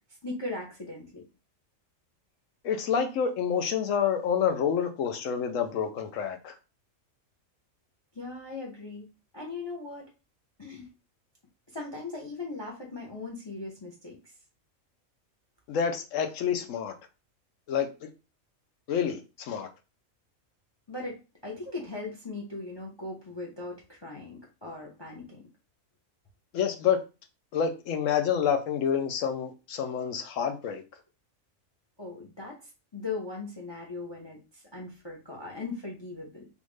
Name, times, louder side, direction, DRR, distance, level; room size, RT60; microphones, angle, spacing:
voice 1, 0.2-1.2 8.1-9.1 9.3-10.1 10.6-10.9 11.7-14.3 20.9-25.4 32.0-32.6 32.9-36.5, left 3 dB, 25° left, 0 dB, 0.6 m, -39 dB
voice 2, 2.6-6.5 15.7-16.9 17.7-17.9 18.9-19.2 19.5-19.7 26.5-27.0 27.5-30.8, left 7 dB, 70° left, 6 dB, 1.0 m, -28 dB
3.5 x 2.6 x 3.1 m, 0.30 s
omnidirectional pair, 1.4 m